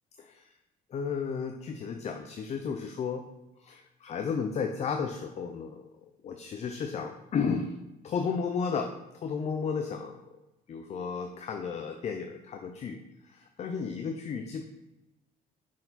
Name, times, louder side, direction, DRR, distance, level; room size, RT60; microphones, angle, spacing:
voice 1, 0.2-0.5 0.9-3.3 3.6-5.9 6.2-7.7 8.0-8.9 9.2-10.2 10.7-13.0 13.2-14.6, left 5 dB, 40° left, 5 dB, 0.5 m, -33 dB
6.0 x 4.5 x 4.1 m, 0.95 s
cardioid pair, 110°, 17 cm